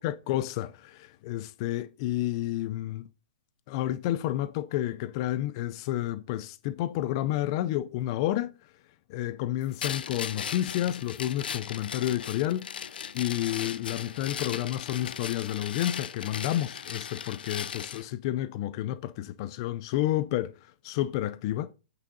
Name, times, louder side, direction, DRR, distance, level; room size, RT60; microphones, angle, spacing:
voice 1, 0.0-3.1 3.7-8.5 9.1-12.7 13.1-21.7, left 13 dB, 30° left, 0.4 m, -30 dB
sound 1, 9.8-18.0, left 8 dB, 80° left, 0.6 m, -37 dB
8.4 x 6.2 x 3.9 m
hypercardioid pair, 165°, 5 cm